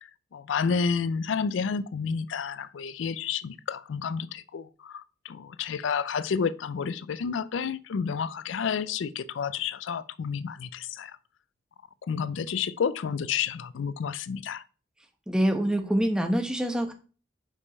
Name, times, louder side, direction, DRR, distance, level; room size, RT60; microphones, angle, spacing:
voice 1, 0.3-11.1 12.1-14.6, left 6 dB, 85° left, 0.4 m, -30 dB
voice 2, 15.3-16.9, right 1 dB, 5° right, 0.9 m, -25 dB
5.3 x 4.9 x 5.4 m
head